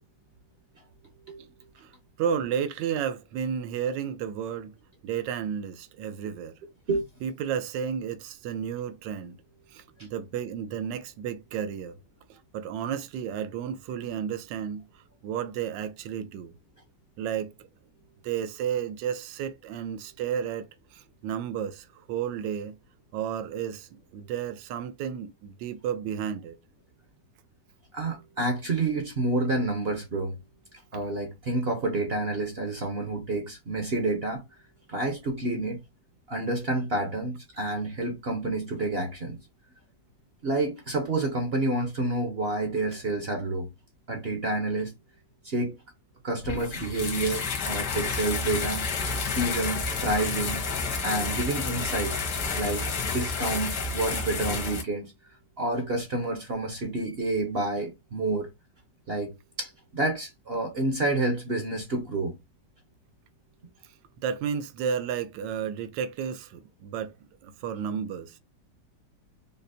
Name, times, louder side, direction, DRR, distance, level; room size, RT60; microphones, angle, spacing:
voice 1, 2.2-4.7 5.0-6.5 7.2-9.4 9.7-12.0 12.3-14.9 15.2-16.5 17.2-17.5 18.2-22.8 23.1-26.6 64.2-67.1 67.4-68.4, right 8 dB, 85° right, 1.3 m, -32 dB
voice 2, 27.9-30.3 30.9-34.4 34.9-35.8 36.3-39.4 40.4-43.7 44.1-44.9 45.4-45.8 46.2-48.9 49.3-50.6 51.0-52.2 52.6-55.1 55.6-58.5 59.1-62.3, right 2 dB, 50° right, 0.7 m, -29 dB
sound 1, 46.4-54.8, left 4 dB, 70° left, 1.7 m, -30 dB
5.4 x 2.1 x 2.6 m
omnidirectional pair, 1.9 m